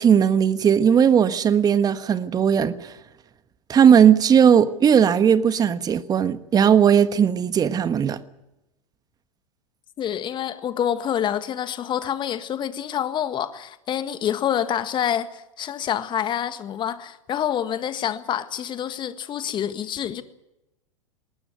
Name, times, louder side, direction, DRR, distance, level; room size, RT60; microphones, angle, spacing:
voice 1, 0.0-2.9 3.7-8.2, right 8 dB, 20° right, 1.3 m, -17 dB
voice 2, 10.0-20.2, left 9 dB, 25° left, 1.6 m, -27 dB
20.5 x 19.5 x 8.0 m
figure-of-eight pair, 95°, 17 cm